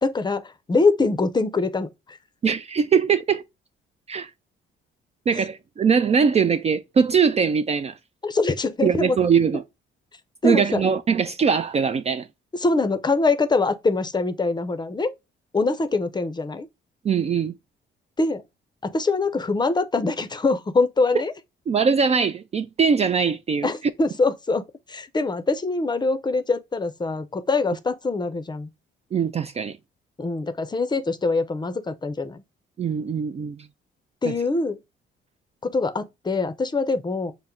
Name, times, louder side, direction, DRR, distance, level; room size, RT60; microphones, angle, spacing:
voice 1, 0.0-2.2 8.2-9.2 10.4-10.8 12.5-15.1 15.5-16.7 18.2-18.4 18.8-21.3 23.6-28.7 30.2-32.4 34.2-34.8 35.6-37.3, left 3 dB, 20° left, 0.6 m, -24 dB
voice 2, 2.4-3.4 4.1-4.3 5.3-7.9 8.8-9.6 10.4-12.3 17.0-17.6 21.7-23.7 29.1-29.8 32.8-33.6 34.2-34.3, right 6 dB, 35° right, 0.4 m, -21 dB
5.6 x 2.1 x 3.7 m
cardioid pair, 90°, 20 cm